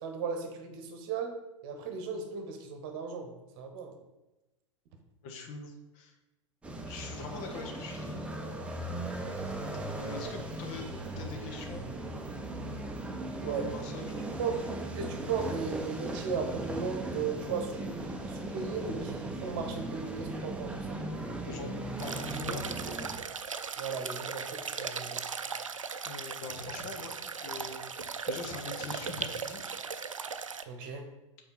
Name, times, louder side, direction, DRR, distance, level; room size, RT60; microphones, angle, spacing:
voice 1, 0.0-1.4 1.6-3.9 13.3-13.7 14.4-14.7 14.9-18.0 18.3-21.0 23.8-25.2 30.7-31.1, right 5 dB, 45° right, 4 dB, 1.1 m, -36 dB
voice 2, 5.2-6.1 6.8-8.4 9.6-11.9 13.4-14.4 21.4-22.7 26.0-29.8, left 3 dB, 40° left, 4 dB, 1.1 m, -43 dB
sound 1, 6.6-23.2, right 2 dB, 5° right, 0.8 m, -38 dB
sound 2, 22.0-30.6, right 6 dB, 80° right, 0.4 m, -38 dB
5.6 x 4.1 x 5.8 m, 1.0 s
figure-of-eight pair, 95°, 16 cm